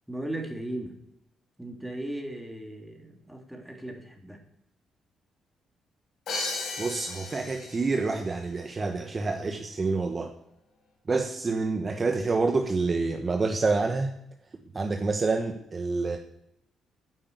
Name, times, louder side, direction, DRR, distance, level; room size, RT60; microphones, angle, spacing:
voice 1, 0.1-1.0 1.6-4.4, right 1 dB, 5° right, 2 dB, 3.1 m, -37 dB
Crash cymbal, 6.3-8.1, left 3 dB, 70° left, 4.8 m, -35 dB
voice 2, 6.8-10.3 11.1-14.1 14.7-16.2, right 3 dB, 35° right, 4 dB, 1.4 m, -27 dB
10.0 x 8.9 x 8.2 m, 0.80 s
cardioid pair, 90°, 0 cm